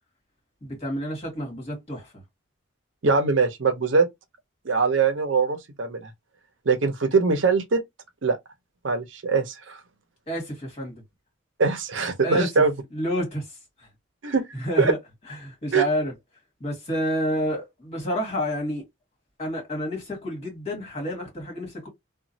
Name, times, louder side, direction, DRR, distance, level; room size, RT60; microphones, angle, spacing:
voice 1, 0.6-2.1 10.3-11.0 12.2-12.5 12.9-13.5 13.8-13.9 14.2-15.0 15.4-16.1 16.6-18.8 19.4-21.9, equal, 35° left, 1.8 m, -29 dB
voice 2, 3.0-4.1 4.6-6.1 6.7-7.8 8.2-8.4 8.8-9.8 11.6-12.7 14.2-14.4 14.8-14.9 15.7-15.8, right 4 dB, 70° right, 0.7 m, -22 dB
2.9 x 2.3 x 2.6 m
head